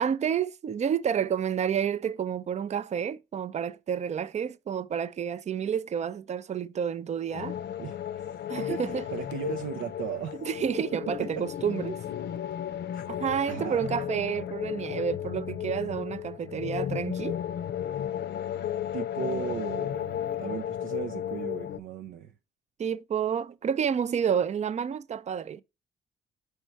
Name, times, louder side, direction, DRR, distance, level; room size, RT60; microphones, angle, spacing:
voice 1, 0.0-7.6 8.5-9.0 10.4-12.0 13.1-17.4 22.8-25.6, right 8 dB, 35° right, 0.4 m, -30 dB
sound 1, 7.3-21.8, left 10 dB, 60° left, 0.6 m, -34 dB
voice 2, 9.1-10.4 10.9-11.0 12.9-13.0 13.5-13.9 18.9-22.3, right 9 dB, 85° right, 0.6 m, -36 dB
5.3 x 4.6 x 4.5 m
cardioid pair, 90°, 20 cm